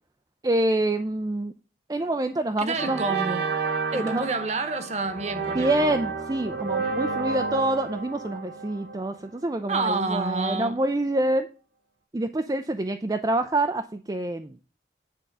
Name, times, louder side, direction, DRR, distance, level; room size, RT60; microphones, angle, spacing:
voice 1, 0.4-1.5 1.9-3.0 3.9-4.2 5.5-11.5 12.1-14.6, right 1 dB, 20° right, 0.4 m, -26 dB
sound 1, 2.0-2.3 2.8-9.6, right 4 dB, 60° right, 1.4 m, -31 dB
voice 2, 2.6-3.5 3.9-5.9 9.7-10.7, right 3 dB, 40° right, 1.0 m, -29 dB
9.9 x 3.7 x 6.6 m
head